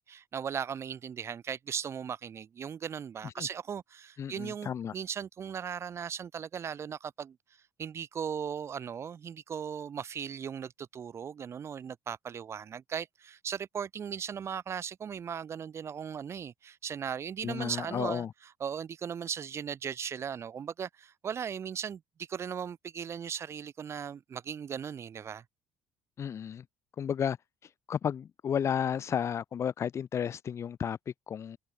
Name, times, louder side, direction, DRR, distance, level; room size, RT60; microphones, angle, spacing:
voice 1, 0.0-7.4 7.8-18.3 18.6-25.4, right 7 dB, 40° right, 2.2 m, -38 dB
voice 2, 4.2-4.9 17.4-18.3 26.2-26.6 27.0-27.4 27.9-31.6, left 8 dB, 40° left, 2.2 m, -32 dB
figure-of-eight pair, 55°, 7 cm